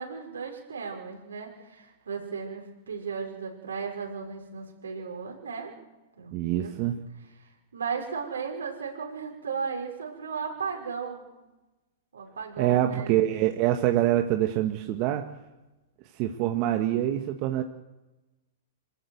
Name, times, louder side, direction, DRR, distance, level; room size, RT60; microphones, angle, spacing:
voice 1, 0.0-5.7 6.2-6.7 7.4-11.3 12.1-13.5, right 5 dB, 80° right, 1 dB, 5.9 m, -36 dB
voice 2, 6.3-7.0 12.6-15.3 16.1-17.6, right 13 dB, 45° right, 5 dB, 1.6 m, -25 dB
26.0 x 14.5 x 8.2 m, 1.1 s
hypercardioid pair, 110°, 0 cm